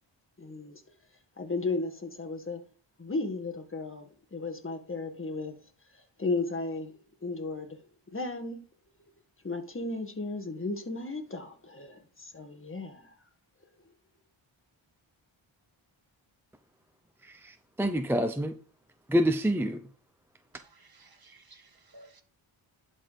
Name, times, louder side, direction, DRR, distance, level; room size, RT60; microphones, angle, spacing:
voice 1, 0.4-0.8 1.4-2.6 3.0-5.6 6.2-6.9 7.2-7.8 8.1-8.6 9.4-13.1, left 3 dB, 25° left, 1.7 m, -34 dB
voice 2, 17.3-18.5 19.1-19.8, equal, 5° right, 0.5 m, -27 dB
voice 3, 20.5-22.2, right 2 dB, 45° right, 1.7 m, -56 dB
11.0 x 4.4 x 5.1 m
wide cardioid pair, 80°, 49 cm